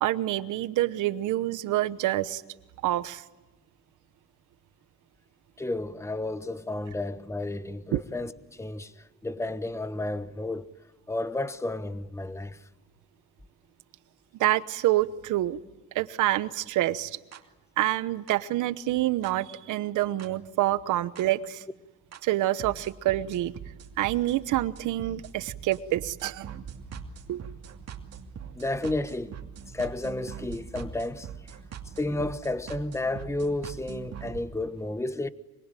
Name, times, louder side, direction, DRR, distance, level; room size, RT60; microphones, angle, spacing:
voice 1, 0.0-2.4 2.8-3.2 7.9-8.0 14.4-15.6 15.9-17.2 17.8-21.6 22.2-23.5 24.0-26.5 27.3-27.4, right 15 dB, 90° right, 1.1 m, -27 dB
voice 2, 5.6-10.7 11.1-12.6 28.6-29.3 29.7-31.3 32.0-35.3, left 2 dB, 10° left, 1.1 m, -32 dB
sound 1, 17.3-17.4 18.3-18.4 19.2-19.3 20.2-20.3 21.2-21.3 22.1-22.2 22.6-34.4, right 7 dB, 60° right, 2.7 m, -42 dB
25.5 x 23.5 x 9.1 m
cardioid pair, 90°, 30 cm